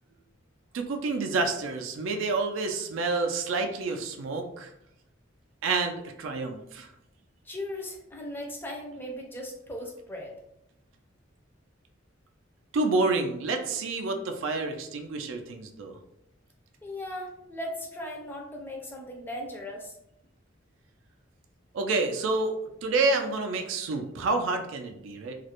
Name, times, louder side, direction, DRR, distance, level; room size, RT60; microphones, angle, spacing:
voice 1, 0.7-4.7 5.6-6.9 12.7-16.0 21.7-25.3, right 3 dB, 75° right, 5 dB, 0.4 m, -28 dB
voice 2, 7.4-10.3 16.8-20.0, left 1 dB, 10° left, -1 dB, 0.4 m, -38 dB
2.4 x 2.0 x 2.8 m, 0.79 s
head